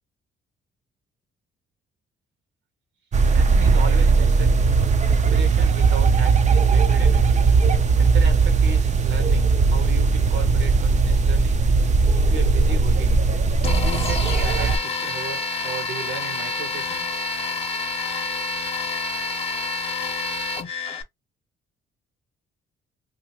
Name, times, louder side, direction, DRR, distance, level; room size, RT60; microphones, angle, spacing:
sound 1, 3.1-14.8, right 4 dB, 35° right, 0.5 m, -18 dB
voice 1, 3.3-4.6 5.1-7.4 8.0-11.6 12.1-13.2 13.8-17.2, right 5 dB, 80° right, 1.1 m, -36 dB
sound 2, 13.6-21.0, left 3 dB, 30° left, 0.8 m, -28 dB
2.7 x 2.5 x 2.8 m
cardioid pair, 90°, 20 cm